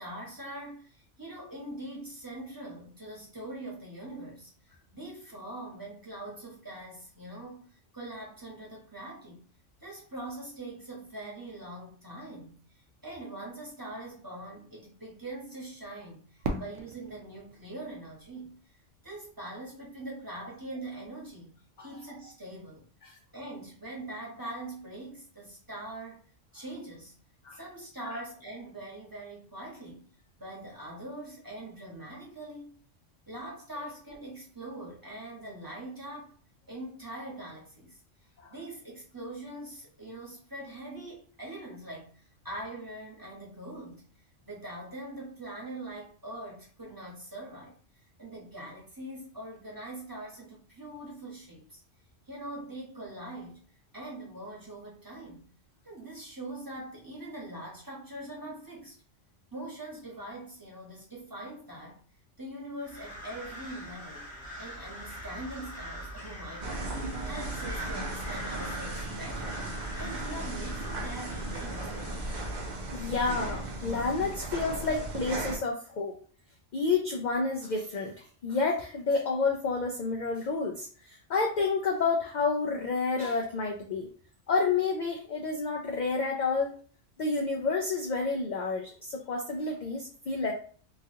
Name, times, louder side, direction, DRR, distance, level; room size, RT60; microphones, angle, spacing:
voice 1, 0.0-4.5 4.9-9.5 9.8-18.6 19.0-22.9 23.3-26.2 26.5-27.1 27.5-30.1 30.4-32.7 33.3-36.3 36.7-38.0 38.5-44.0 44.4-47.7 48.2-51.8 52.3-53.6 53.9-55.5 55.8-59.0 59.5-62.0 62.4-64.3 64.6-69.6 70.0-72.3, right 1 dB, 20° right, -4 dB, 1.0 m, -42 dB
Fireworks, 16.4-19.3, right 3 dB, 80° right, 0.9 m, -39 dB
sound 1, 62.8-72.5, equal, 5° left, 0.9 m, -42 dB
sound 2, 66.6-75.6, right 2 dB, 50° right, 0.6 m, -36 dB
voice 2, 72.9-76.1 76.7-84.1 84.5-86.7 87.2-90.5, left 4 dB, 65° left, 0 dB, 0.4 m, -30 dB
3.0 x 2.5 x 2.7 m, 0.44 s
omnidirectional pair, 1.3 m